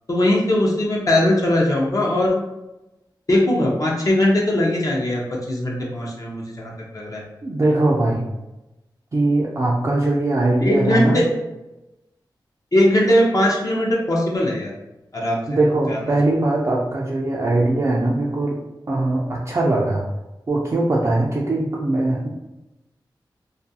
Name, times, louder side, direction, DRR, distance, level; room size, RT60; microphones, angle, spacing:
voice 1, 0.1-2.4 3.3-5.2 5.5-7.2 10.6-11.3 12.7-14.7 15.1-15.4 15.9-16.0, left 1 dB, 45° left, -3 dB, 0.6 m, -20 dB
voice 2, 7.4-8.3 9.1-11.2 15.5-18.6 18.9-20.1 20.5-22.3, right 2 dB, 40° right, -4 dB, 0.3 m, -20 dB
2.4 x 2.3 x 2.6 m, 0.97 s
wide cardioid pair, 100°, 8 cm